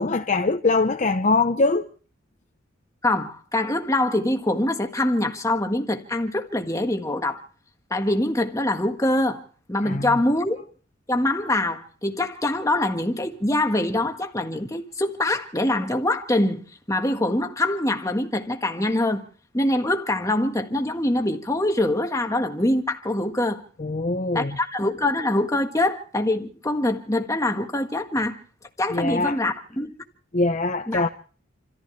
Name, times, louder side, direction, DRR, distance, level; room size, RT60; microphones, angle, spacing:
voice 1, 0.0-1.9 9.8-10.2 23.8-24.6 28.9-29.4 30.3-31.1, left 3 dB, 40° left, 0.8 m, -23 dB
voice 2, 3.0-7.4 7.9-9.4 9.7-10.7 11.1-19.3 19.5-23.6 24.3-28.4 28.8-29.9 30.9-31.1, left 1 dB, 15° left, 1.6 m, -24 dB
28.5 x 14.5 x 3.3 m
head